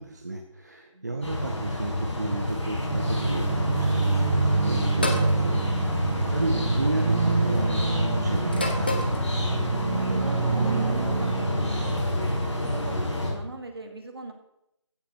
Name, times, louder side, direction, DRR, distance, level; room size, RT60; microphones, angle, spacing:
voice 1, 0.0-9.0, right 2 dB, 35° right, 4 dB, 0.7 m, -33 dB
sound 1, 1.2-13.3, left 1 dB, 60° left, 4.8 m, -28 dB
sound 2, 2.9-12.0, right 4 dB, 75° right, 0.4 m, -27 dB
sound 3, 5.0-5.3 6.5-6.9 8.5-9.2, left 2 dB, 20° left, 0.7 m, -29 dB
voice 2, 9.5-12.3 12.7-14.3, right 2 dB, 50° right, 5 dB, 1.8 m, -41 dB
15.0 x 5.8 x 5.1 m, 0.83 s
figure-of-eight pair, 170°, 16 cm